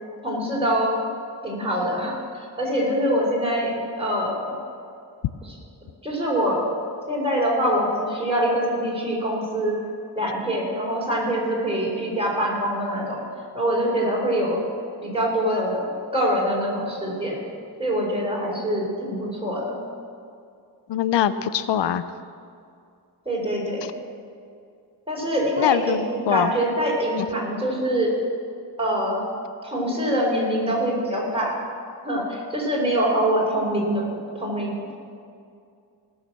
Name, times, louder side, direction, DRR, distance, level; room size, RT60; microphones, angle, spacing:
voice 1, 0.2-1.0 1.4-4.5 5.4-5.5 6.0-6.7 7.1-9.8 10.2-13.2 13.5-14.6 15.0-17.4 17.8-19.8 23.3-23.8 25.1-28.1 28.8-29.2 29.6-31.6 32.0-34.9, equal, 15° right, -4 dB, 4.0 m, -24 dB
voice 2, 20.9-22.0 23.8-23.9 25.6-26.0 26.3-26.5, left 10 dB, 90° left, 13 dB, 0.6 m, -22 dB
19.0 x 6.5 x 7.4 m, 2.4 s
wide cardioid pair, 120°, 41 cm